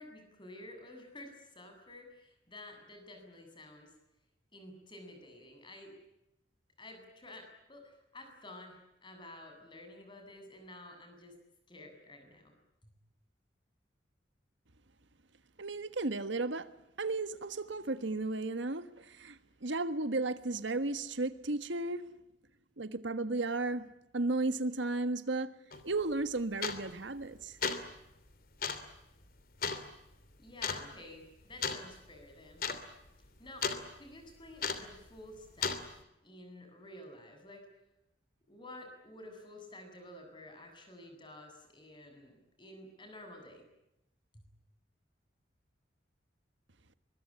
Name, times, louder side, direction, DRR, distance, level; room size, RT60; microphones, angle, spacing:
voice 1, 0.0-3.9 4.5-6.0 6.8-11.3 11.7-12.5 12.8-12.9 30.4-32.7 33.4-33.7 34.0-37.7 38.5-43.7 44.3-44.4, left 1 dB, 25° left, 5 dB, 7.8 m, -51 dB
voice 2, 15.6-16.7 17.0-22.0 22.8-23.8 24.1-25.5 25.8-27.6, right 2 dB, 85° right, 11 dB, 1.5 m, -34 dB
sound 1, 25.7-25.8 26.6-27.0 27.4-27.9 28.6-28.9 29.6-29.8 30.6-30.8 31.6-31.8 32.1-32.2 32.5-32.8 33.1-33.8 34.6-34.9 35.6-35.8, left 5 dB, 50° left, 2.9 m, -34 dB
24.0 x 22.5 x 9.8 m, 0.88 s
head